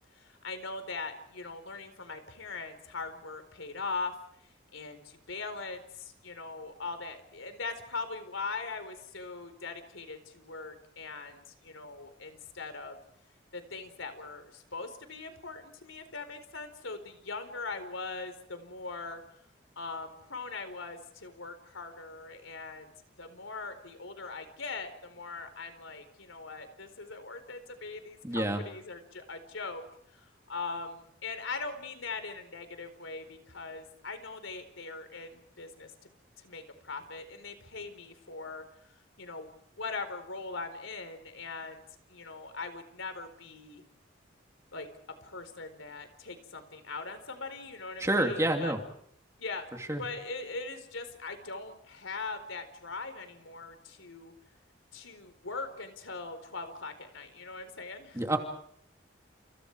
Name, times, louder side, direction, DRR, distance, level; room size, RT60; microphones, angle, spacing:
voice 1, 0.1-4.1 4.7-13.0 13.5-19.2 19.8-22.9 23.2-29.8 30.1-38.6 38.9-39.5 39.8-41.8 42.1-43.8 44.7-44.9 45.2-48.7 49.4-49.7 50.0-54.3 54.9-58.2, left 4 dB, 90° left, 9 dB, 4.3 m, -41 dB
voice 2, 28.2-28.6 48.0-48.8 49.9-50.0 58.1-58.4, right 1 dB, 15° right, 4 dB, 2.7 m, -28 dB
30.0 x 29.0 x 4.8 m, 0.67 s
head